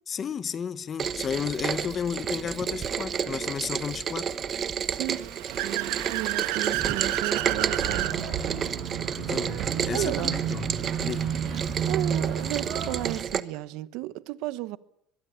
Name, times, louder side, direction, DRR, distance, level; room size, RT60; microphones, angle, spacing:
voice 1, 0.1-4.3 9.2-11.4, left 7 dB, 25° left, 1.0 m, -33 dB
Rain, 1.0-13.4, right 7 dB, 30° right, 1.0 m, -31 dB
voice 2, 4.9-5.3 5.6-8.2 9.9-10.4 11.9-14.8, right 17 dB, 65° right, 1.0 m, -33 dB
Car / Accelerating revving vroom, 4.9-8.2, right 19 dB, 90° right, 1.6 m, -30 dB
sound 1, 7.3-13.1, right 8 dB, 45° right, 7.7 m, -31 dB
23.0 x 22.5 x 8.6 m
cardioid pair, 160°, 0 cm